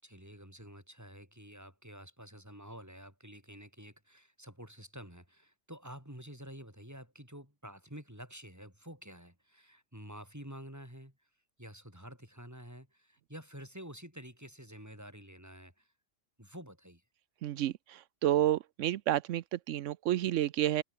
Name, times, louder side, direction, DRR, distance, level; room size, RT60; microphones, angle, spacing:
voice 1, 0.0-11.3 11.6-15.9 16.4-17.0, equal, 15° right, 7.3 m, -49 dB
voice 2, 17.4-20.8, right 13 dB, 85° right, 1.0 m, -30 dB
open air
omnidirectional pair, 1.3 m